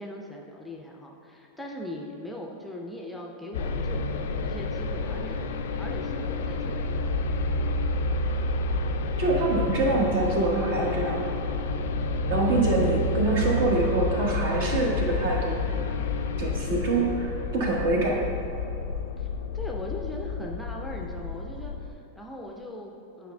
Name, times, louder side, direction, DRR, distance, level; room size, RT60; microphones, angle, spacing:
voice 1, 0.0-5.4 5.8-7.3 19.2-19.3 19.5-23.3, left 1 dB, 5° left, -1 dB, 0.5 m, -40 dB
sound 1, 3.5-21.9, left 2 dB, 55° left, 0.4 m, -29 dB
voice 2, 9.2-11.2 12.3-15.6 16.4-18.2, right 2 dB, 55° right, -2 dB, 1.1 m, -25 dB
10.0 x 5.2 x 2.2 m, 2.8 s
figure-of-eight pair, 90°, 0 cm